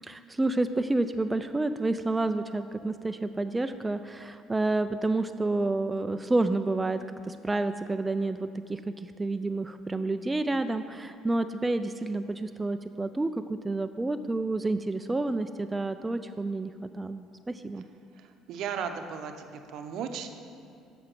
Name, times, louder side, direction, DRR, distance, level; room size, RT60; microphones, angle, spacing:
voice 1, 0.0-7.0 7.3-17.8, right 2 dB, 15° right, 9 dB, 0.3 m, -29 dB
voice 2, 18.5-20.3, right 7 dB, 65° right, 7 dB, 0.7 m, -35 dB
6.9 x 6.7 x 5.9 m, 2.4 s
supercardioid pair, 80°, 0 cm